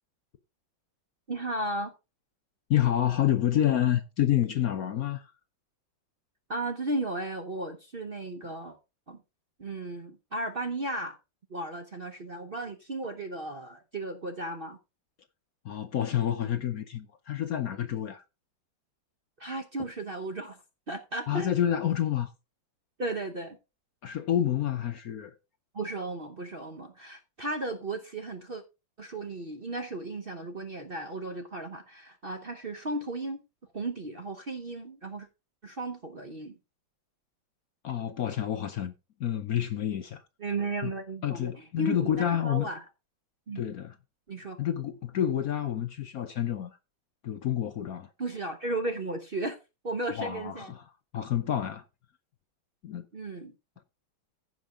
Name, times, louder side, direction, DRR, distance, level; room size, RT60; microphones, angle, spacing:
voice 1, 1.3-1.9 6.5-8.8 9.1-9.2 9.6-11.2 11.5-14.8 19.4-20.6 20.9-21.6 23.0-23.6 25.7-28.6 29.0-33.4 33.7-35.3 35.6-36.6 40.4-42.8 43.5-43.6 44.3-44.6 48.2-49.6 49.8-50.7 53.1-53.5, right 2 dB, 40° right, 0.8 m, -35 dB
voice 2, 2.7-5.3 15.6-18.2 21.3-22.3 24.0-25.3 37.8-38.9 39.2-40.2 40.8-40.9 41.2-42.7 43.6-43.9 44.6-46.8 47.2-48.1 50.1-50.8 51.1-51.8 52.8-53.0, left 11 dB, 65° left, 1.0 m, -28 dB
15.5 x 5.3 x 3.7 m
omnidirectional pair, 2.1 m